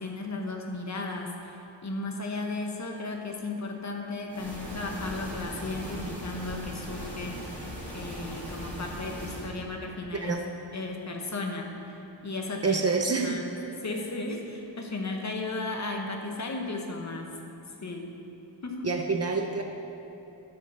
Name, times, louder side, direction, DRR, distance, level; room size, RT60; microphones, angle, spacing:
voice 1, 0.0-7.4 7.9-10.3 10.7-12.0 12.2-12.8 13.2-13.5 13.8-17.4 17.8-18.1 18.6-18.9, left 2 dB, 35° left, 2 dB, 1.0 m, -35 dB
sound 1, 4.3-9.5, equal, 5° left, 2.2 m, -39 dB
voice 2, 12.6-13.4 18.8-19.6, right 4 dB, 35° right, 3 dB, 0.6 m, -27 dB
12.0 x 5.3 x 5.5 m, 2.9 s
wide cardioid pair, 155°, 46 cm